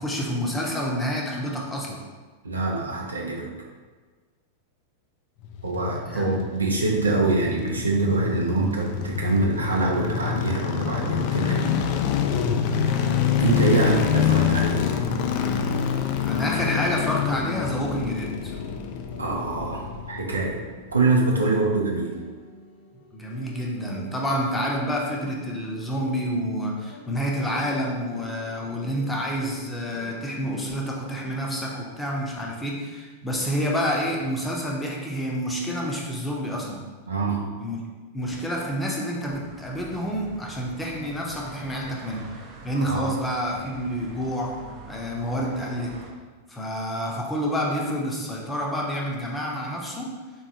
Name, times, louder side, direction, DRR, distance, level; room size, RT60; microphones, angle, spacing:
voice 1, 0.0-2.0 6.1-6.4 13.7-14.0 15.8-15.9 16.2-18.6 22.9-36.8 37.6-37.8 38.1-42.3 42.6-46.0 46.5-50.2, equal, 10° left, -2 dB, 0.7 m, -28 dB
voice 2, 2.4-3.5 5.6-11.7 13.0-13.1 13.4-14.9 19.2-20.6 20.9-22.2 37.1-37.4 42.9-43.1, right 3 dB, 85° right, -1 dB, 0.6 m, -24 dB
sound 1, 5.4-20.7 20.9-21.0, left 7 dB, 50° left, 0.3 m, -26 dB
sound 2, 13.0-31.6, equal, 70° left, 1.3 m, -47 dB
sound 3, 39.4-46.1, right 3 dB, 35° right, 0.6 m, -44 dB
3.6 x 3.0 x 2.7 m, 1.4 s
figure-of-eight pair, 95°, 0 cm